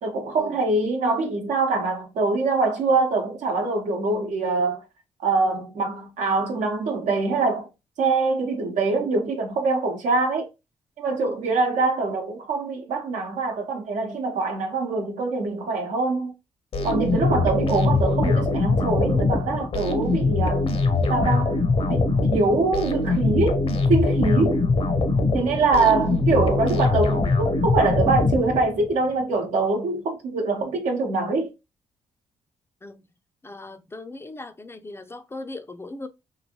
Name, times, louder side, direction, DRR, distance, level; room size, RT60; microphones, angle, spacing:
voice 1, 0.0-4.8 5.2-7.7 8.0-10.5 11.0-16.3 16.8-20.8 21.1-21.6 21.9-23.6 23.9-24.6 25.3-31.5, right 3 dB, 80° right, 0.9 m, -24 dB
sound 1, 16.7-28.9, left 3 dB, 50° left, 0.7 m, -22 dB
voice 2, 24.4-24.7 25.3-25.6 32.8-33.0 33.4-36.1, left 2 dB, 20° left, 0.4 m, -39 dB
3.0 x 2.5 x 2.8 m
supercardioid pair, 65°, 12 cm